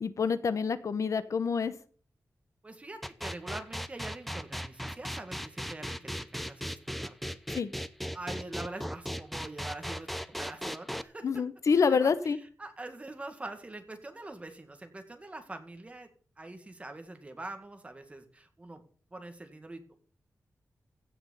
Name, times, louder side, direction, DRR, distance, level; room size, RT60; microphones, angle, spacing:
voice 1, 0.0-1.7 7.5-7.7 11.2-12.4, left 5 dB, 65° left, 14 dB, 0.9 m, -27 dB
voice 2, 2.6-7.4 8.1-11.3 11.8-16.1 16.4-18.8 19.1-20.0, right 2 dB, 20° right, 7 dB, 2.0 m, -44 dB
sound 1, 3.0-11.0, equal, ahead, 0.7 m, -37 dB
16.0 x 6.1 x 7.0 m, 0.43 s
wide cardioid pair, 165°, 6 cm